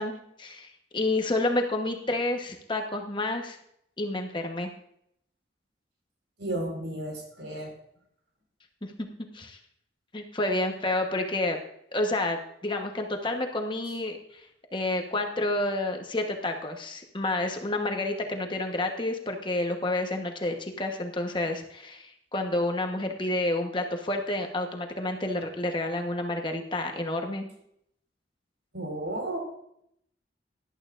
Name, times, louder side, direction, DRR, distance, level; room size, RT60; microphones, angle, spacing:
voice 1, 0.0-3.6 4.0-4.7 9.3-9.6 10.1-11.6 11.9-14.5 14.7-27.5, left 2 dB, 25° left, 3 dB, 1.1 m, -29 dB
voice 2, 6.4-7.7 28.7-29.4, right 1 dB, 75° right, 1 dB, 4.6 m, -33 dB
18.0 x 11.5 x 2.5 m, 0.73 s
head